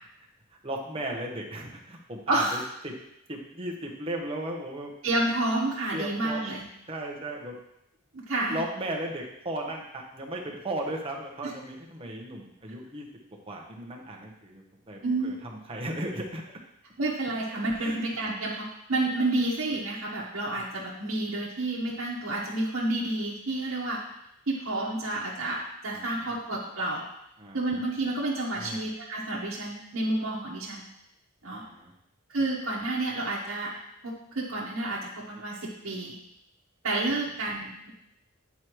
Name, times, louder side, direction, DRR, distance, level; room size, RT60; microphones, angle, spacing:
voice 1, 0.6-2.9 3.3-4.9 5.9-6.4 6.9-7.5 8.5-13.1 13.5-16.4 17.7-18.0 20.5-20.6 25.9-26.4 27.4-27.8 28.5-28.8 31.4-31.9 37.1-37.2, right 1 dB, 25° right, 0 dB, 1.0 m, -36 dB
voice 2, 2.3-2.6 5.0-6.7 8.1-8.6 11.4-11.5 15.0-15.4 17.0-24.0 24.5-27.0 27.5-30.9 31.4-31.6 32.3-33.7 34.0-36.2 36.8-37.9, right 2 dB, 75° right, -5 dB, 1.1 m, -30 dB
9.5 x 4.7 x 3.1 m, 0.80 s
head